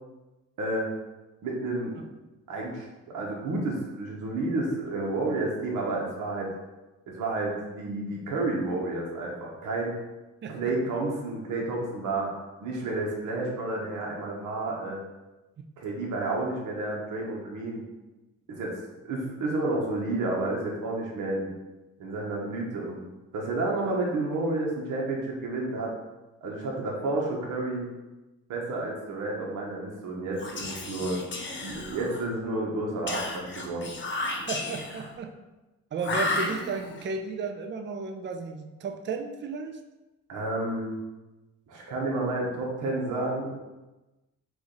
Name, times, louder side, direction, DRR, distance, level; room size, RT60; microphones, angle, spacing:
voice 1, 0.6-0.9 1.4-1.9 2.5-6.5 7.1-10.0 10.5-12.3 12.6-15.0 15.8-17.8 18.5-21.5 22.0-23.0 23.3-25.9 26.4-27.9 28.5-31.2 31.6-33.9 40.3-41.0 41.7-43.5, right 2 dB, 85° right, -2 dB, 1.1 m, -30 dB
Whispering, 30.3-32.3 33.1-35.1 36.0-37.0, left 2 dB, 40° left, 0.9 m, -33 dB
voice 2, 34.5-35.3 35.9-39.8, right 4 dB, 40° right, 5 dB, 0.5 m, -33 dB
4.9 x 2.6 x 3.8 m, 1.1 s
cardioid pair, 90°, 30 cm